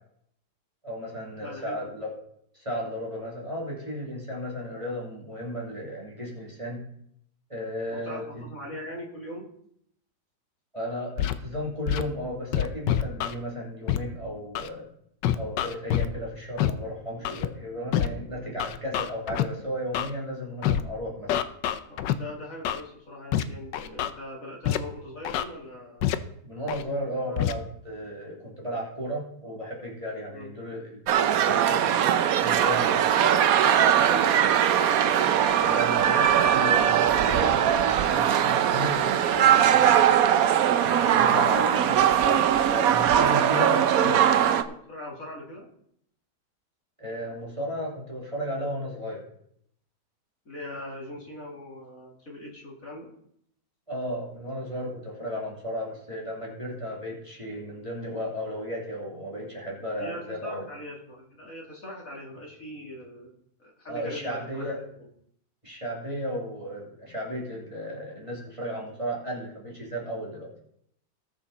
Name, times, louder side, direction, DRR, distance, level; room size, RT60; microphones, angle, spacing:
voice 1, 0.8-2.1 2.5-6.8 7.5-8.5 10.7-14.8 15.4-21.3 26.4-32.1 32.4-33.4 35.6-39.9 40.8-44.2 47.0-49.2 53.9-60.7 63.9-64.8 65.6-70.5, equal, 15° right, -3 dB, 2.8 m, -34 dB
voice 2, 1.4-2.0 7.9-9.5 21.9-26.1 27.1-27.4 30.3-30.5 32.7-33.2 33.6-34.7 40.9-41.7 43.3-44.4 44.7-45.7 50.4-53.1 60.0-63.3 63.6-65.1, left 1 dB, 50° left, -3 dB, 3.3 m, -40 dB
Scratching (performance technique), 11.2-11.3 11.9-12.0 12.5-13.3 13.9-14.0 14.5-14.7 15.2-16.1 16.6-16.7 17.2-17.5 17.9-18.1 18.6-19.4 19.9-20.1 20.6-20.8 21.3-22.1 22.6-22.8 23.3-23.4 23.7-24.1 24.6-24.8 25.2-25.4 26.0-26.1 26.7-26.8 27.4-27.5, left 11 dB, 80° left, 1.3 m, -25 dB
sound 1, 31.1-44.6, right 9 dB, 65° right, 1.0 m, -21 dB
19.0 x 6.4 x 4.1 m, 0.69 s
omnidirectional pair, 1.9 m